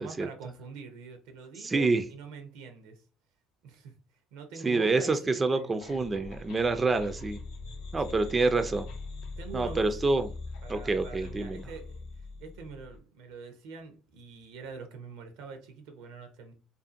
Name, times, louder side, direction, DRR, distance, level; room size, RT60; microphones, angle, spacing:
voice 1, 0.0-3.0 3.6-3.9 4.3-5.8 8.0-8.3 9.4-9.9 10.6-12.0 12.4-16.5, right 5 dB, 80° right, 0.6 m, -44 dB
voice 2, 1.6-2.0 4.6-7.4 7.9-8.9 9.5-10.3 10.7-11.6, right 3 dB, 25° right, 0.3 m, -27 dB
sound 1, 5.8-13.0, left 3 dB, 80° left, 0.6 m, -42 dB
2.5 x 2.4 x 2.4 m
supercardioid pair, 85°, 0 cm